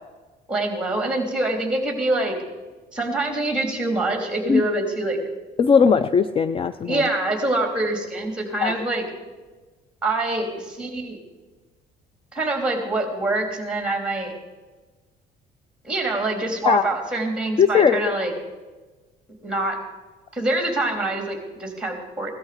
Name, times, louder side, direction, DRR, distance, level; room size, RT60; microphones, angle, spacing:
voice 1, 0.5-2.4 2.9-5.2 6.8-9.0 10.0-11.2 12.3-14.4 15.8-18.3 19.4-19.8 20.3-22.3, right 2 dB, 5° right, 4 dB, 3.2 m, -25 dB
voice 2, 5.6-7.1 8.6-8.7 16.6-16.8 17.6-18.1, left 6 dB, 35° left, 14 dB, 0.5 m, -18 dB
17.0 x 13.0 x 5.1 m, 1.3 s
cardioid pair, 110°, 17 cm